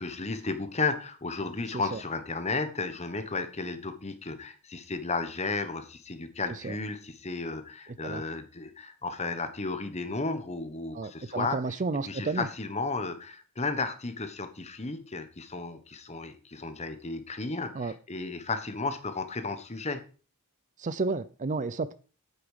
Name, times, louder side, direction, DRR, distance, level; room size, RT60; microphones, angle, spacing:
voice 1, 0.0-11.6 12.1-20.0, left 3 dB, 30° left, 9 dB, 1.2 m, -33 dB
voice 2, 10.9-12.5 17.7-17.9 20.8-21.9, right 3 dB, 35° right, 15 dB, 0.5 m, -31 dB
8.8 x 8.5 x 4.9 m, 0.36 s
head